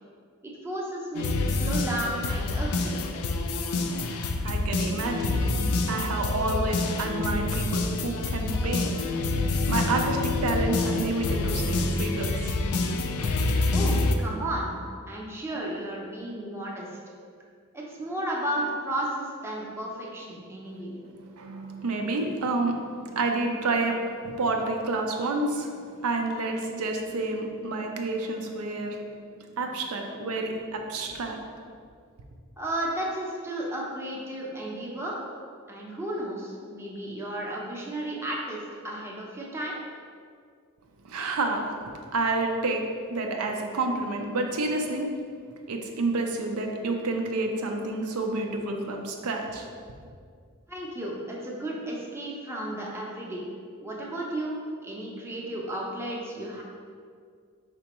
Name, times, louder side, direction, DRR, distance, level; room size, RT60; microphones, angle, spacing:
voice 1, 0.4-3.0 13.7-14.7 15.1-16.9 17.7-21.1 32.6-35.2 35.7-39.8 50.7-53.4 53.8-54.6 54.8-56.6, right 1 dB, 10° right, -3 dB, 0.6 m, -33 dB
sound 1, 1.1-14.2, left 2 dB, 75° left, 0.4 m, -27 dB
voice 2, 4.0-12.8 20.7-20.8 21.1-29.1 29.4-31.4 41.0-45.1 45.7-49.7, right 2 dB, 85° right, 3 dB, 0.5 m, -29 dB
5.0 x 3.4 x 2.9 m, 2.2 s
head